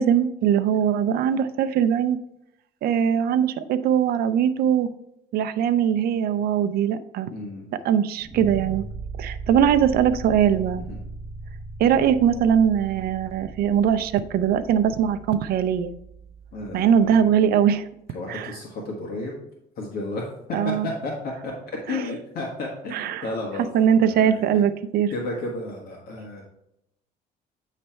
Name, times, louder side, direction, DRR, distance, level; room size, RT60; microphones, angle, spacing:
voice 1, 0.0-2.2 2.8-4.9 5.3-7.3 7.8-8.9 9.2-10.8 11.8-15.9 16.7-17.8 18.3-18.5 20.5-20.9 21.9-22.0 22.9-23.2 23.7-25.1, right 8 dB, 65° right, 11 dB, 0.5 m, -21 dB
voice 2, 7.3-7.6 10.9-11.0 16.5-17.3 18.1-19.4 19.8-21.1 21.4-21.5 21.9-24.6 25.1-26.4, left 2 dB, 65° left, -1 dB, 1.4 m, -33 dB
sound 1, 8.2-17.2, right 4 dB, 5° right, 2.0 m, -38 dB
8.7 x 3.3 x 4.4 m, 0.81 s
cardioid pair, 110°, 17 cm